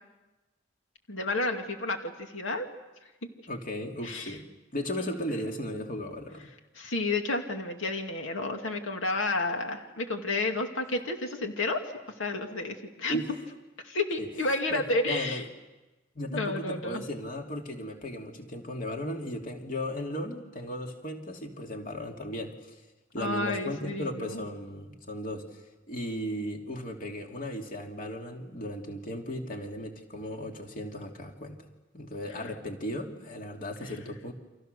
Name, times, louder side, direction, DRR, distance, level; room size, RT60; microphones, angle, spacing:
voice 1, 1.1-2.7 4.0-4.4 6.8-11.8 12.2-13.2 13.8-15.4 16.3-17.0 23.2-24.4 33.8-33.9, left 2 dB, 85° left, 4 dB, 2.4 m, -31 dB
voice 2, 3.5-4.4 4.7-6.5 13.1-13.3 14.2-14.3 14.7-15.4 16.1-22.8 23.1-31.7 31.9-34.3, left 1 dB, 45° left, 2 dB, 2.7 m, -36 dB
29.5 x 26.5 x 6.8 m, 1.1 s
head